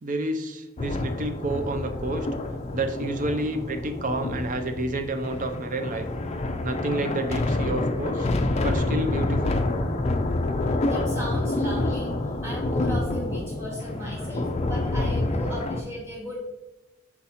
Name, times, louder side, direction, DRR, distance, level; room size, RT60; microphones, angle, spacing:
voice 1, 0.0-2.3 2.7-6.1 6.6-8.3 8.6-9.6, right 2 dB, 35° right, 7 dB, 0.6 m, -29 dB
sound 1, 0.8-15.8, left 2 dB, 30° left, 0.4 m, -27 dB
voice 2, 8.5-8.8 9.8-10.0 10.9-12.1 12.4-16.4, equal, 10° right, -4 dB, 1.9 m, -37 dB
5.8 x 4.1 x 4.2 m, 1.1 s
head